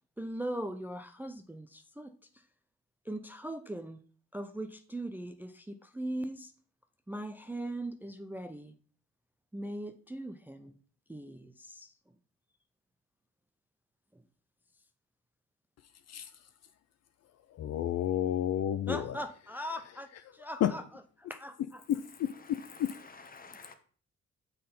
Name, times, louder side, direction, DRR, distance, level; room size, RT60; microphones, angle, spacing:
voice 1, 0.2-2.1 3.1-4.0 4.3-6.5 7.1-8.7 9.5-10.7 11.1-11.9 14.1-14.2 18.9-20.8 21.2-21.8, right 1 dB, 5° right, 8 dB, 0.5 m, -40 dB
voice 2, 17.5-19.2 20.6-20.7 21.9-22.9, left 10 dB, 60° left, 11 dB, 0.5 m, -31 dB
voice 3, 22.3-23.7, left 4 dB, 30° left, 8 dB, 1.1 m, -52 dB
6.5 x 3.8 x 5.3 m, 0.43 s
cardioid pair, 90°, 30 cm